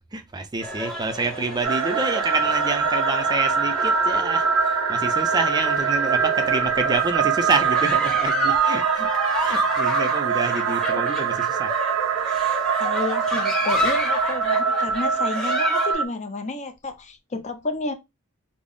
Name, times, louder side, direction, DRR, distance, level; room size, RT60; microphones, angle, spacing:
voice 1, 0.1-9.0 9.3-11.8 17.3-17.4, right 3 dB, 20° right, 0.4 m, -28 dB
sound 1, 0.6-15.9, left 2 dB, ahead, 0.8 m, -31 dB
sound 2, 1.6-16.1, right 6 dB, 80° right, 0.5 m, -23 dB
voice 2, 12.8-17.9, left 2 dB, 30° left, 0.5 m, -31 dB
3.5 x 2.0 x 3.6 m
head